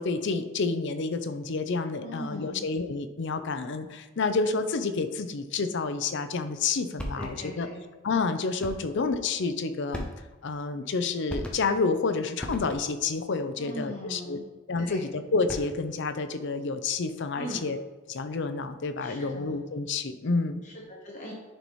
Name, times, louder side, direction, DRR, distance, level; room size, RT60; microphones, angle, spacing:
voice 1, 0.0-7.7 8.0-10.1 10.4-14.4 14.7-17.8 18.1-20.6, left 4 dB, 60° left, 9 dB, 0.5 m, -29 dB
voice 2, 2.0-2.6 7.1-7.8 8.8-8.9 13.6-14.5 14.8-15.1 17.3-17.7 19.0-19.6 20.6-21.3, equal, 35° left, -2 dB, 1.1 m, -40 dB
sound 1, 7.0-7.6 8.6-9.0 9.9-10.5 11.3-11.9 12.4-13.1 15.3-15.9, equal, 5° left, 0.7 m, -38 dB
10.0 x 4.1 x 3.1 m, 1.2 s
head